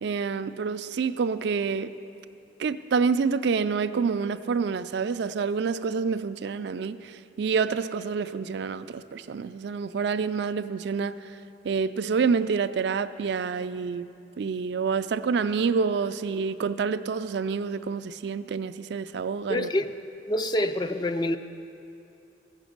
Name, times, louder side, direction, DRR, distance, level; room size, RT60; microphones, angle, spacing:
voice 1, 0.0-1.9 2.6-11.2 11.6-14.1 14.4-19.7, right 5 dB, 60° right, 0.3 m, -27 dB
voice 2, 19.5-19.9 20.3-21.4, left 1 dB, 20° left, 0.3 m, -26 dB
15.0 x 6.1 x 7.8 m
head